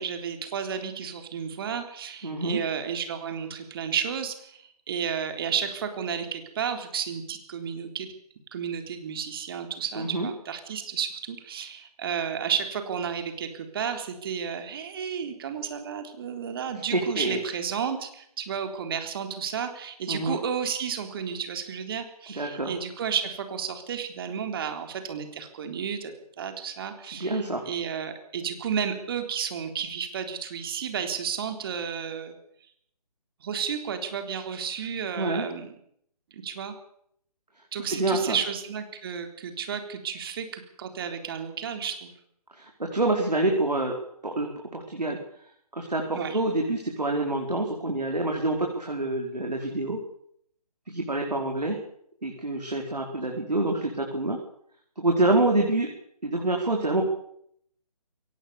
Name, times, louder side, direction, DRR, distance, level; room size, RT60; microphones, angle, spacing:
voice 1, 0.0-8.1 8.5-26.1 26.4-32.4 33.4-35.7 36.3-36.7 37.7-42.1 46.1-46.4, right 7 dB, 35° right, 6 dB, 3.8 m, -32 dB
voice 2, 2.2-2.6 9.9-10.3 16.9-17.4 20.1-20.4 22.3-22.7 27.1-27.6 35.2-35.5 37.8-38.4 42.5-43.9 44.2-45.2 45.7-50.0 50.9-51.8 52.2-54.4 55.0-55.9 56.2-57.0, right 2 dB, 90° right, 1 dB, 4.9 m, -27 dB
23.0 x 18.5 x 7.0 m, 0.68 s
figure-of-eight pair, 150°, 20 cm